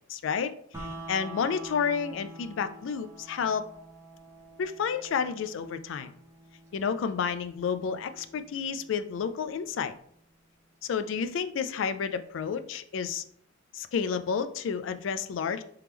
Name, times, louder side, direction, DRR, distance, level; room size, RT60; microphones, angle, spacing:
voice 1, 0.1-0.5 0.8-3.7 4.6-6.1 6.7-9.9 10.8-13.2 13.7-15.6, left 6 dB, 75° left, 11 dB, 0.3 m, -30 dB
sound 1, 0.7-10.7, right 2 dB, 15° right, 0.7 m, -47 dB
3.3 x 3.0 x 3.4 m, 0.64 s
head